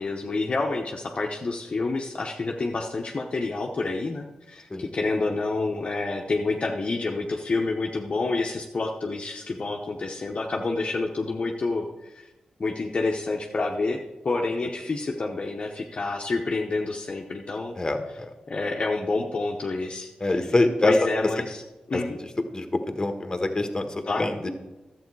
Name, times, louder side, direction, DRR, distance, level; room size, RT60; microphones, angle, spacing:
voice 1, 0.0-12.3 12.6-17.8 18.5-20.6 20.8-21.6 21.9-22.2 24.1-24.3, left 3 dB, 50° left, 0 dB, 0.9 m, -28 dB
voice 2, 17.7-18.3 20.2-20.9 21.9-22.0 22.5-24.5, left 2 dB, 25° left, 6 dB, 1.4 m, -25 dB
11.5 x 7.8 x 4.7 m, 1.1 s
cardioid pair, 60°, 2 cm